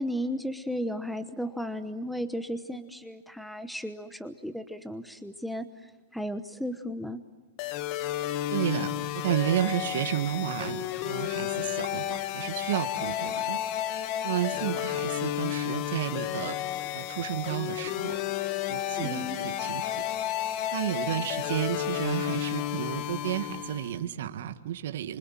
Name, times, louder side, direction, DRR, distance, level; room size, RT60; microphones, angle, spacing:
voice 1, 0.0-7.2 16.8-16.9 19.0-19.4, equal, ahead, 10 dB, 1.0 m, -35 dB
sound 1, 7.6-24.0, left 12 dB, 40° left, 1.2 m, -32 dB
voice 2, 8.5-13.6 14.2-16.5 16.9-18.2 18.6-19.9 20.7-25.2, right 11 dB, 70° right, 8 dB, 1.6 m, -32 dB
27.5 x 25.5 x 7.5 m, 1.5 s
hypercardioid pair, 145°, 0 cm